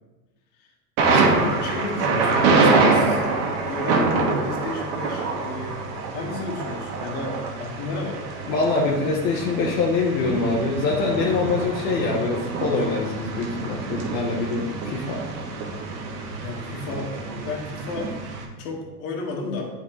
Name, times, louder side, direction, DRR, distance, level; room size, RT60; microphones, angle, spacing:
Thunder, 1.0-18.4, right 3 dB, 65° right, 1.5 m, -25 dB
voice 1, 1.1-3.2 3.7-5.8 6.1-8.2 16.4-17.1 17.4-18.1 18.6-19.7, left 3 dB, 65° left, -1 dB, 1.8 m, -32 dB
voice 2, 8.5-15.2, left 3 dB, 80° left, -3 dB, 1.2 m, -24 dB
8.2 x 4.3 x 3.1 m, 1.2 s
hypercardioid pair, 105°, 50 cm